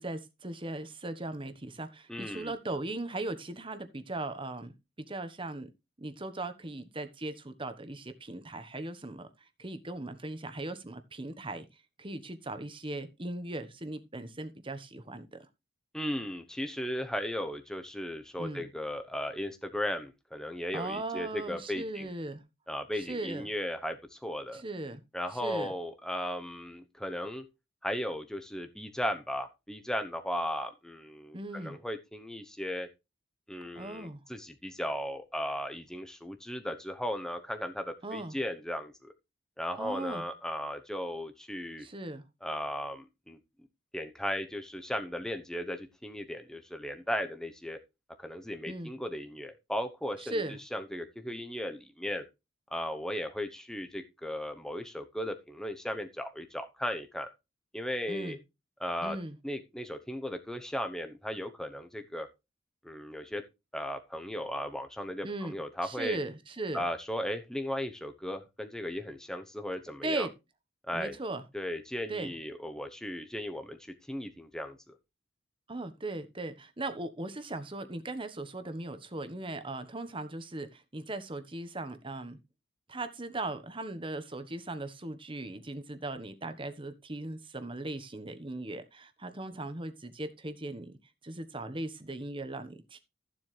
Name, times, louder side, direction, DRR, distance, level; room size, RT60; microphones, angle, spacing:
voice 1, 0.0-4.7 5.0-5.7 6.0-9.3 9.6-11.7 12.0-15.5 18.4-18.7 20.7-22.4 23.0-23.4 24.5-25.0 25.3-25.7 31.3-31.8 33.8-34.2 38.0-38.4 39.8-40.2 41.8-42.2 48.7-48.9 50.2-50.6 58.1-58.4 59.0-59.4 65.2-65.6 65.8-66.8 70.0-70.3 70.9-71.4 72.1-72.3 75.7-82.4 82.9-91.0 91.2-93.0, right 2 dB, 25° right, 1.2 m, -38 dB
voice 2, 2.1-2.5 15.9-22.1 22.7-24.6 25.1-27.5 27.8-32.9 33.5-39.1 39.6-41.9 42.4-43.4 43.9-47.8 48.2-50.4 50.7-52.2 52.7-57.3 57.7-58.4 58.8-59.2 59.4-62.3 62.8-63.4 63.7-66.2 66.7-70.3 70.9-71.1 71.5-73.8 74.1-74.8, equal, 5° left, 0.9 m, -36 dB
14.0 x 7.7 x 3.3 m
head